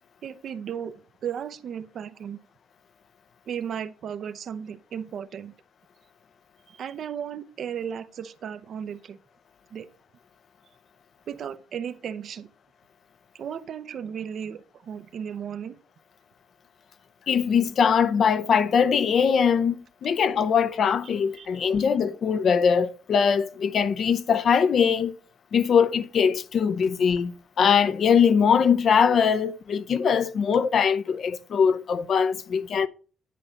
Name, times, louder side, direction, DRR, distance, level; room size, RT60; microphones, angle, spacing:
voice 1, 0.2-2.4 3.5-5.5 6.7-9.2 9.7-9.9 11.3-12.5 13.3-15.8 21.3-21.9, right 8 dB, 60° right, 0.6 m, -35 dB
voice 2, 17.3-25.1 25.5-32.9, left 6 dB, 60° left, 0.6 m, -22 dB
10.5 x 4.3 x 5.2 m
cardioid pair, 90°, 0 cm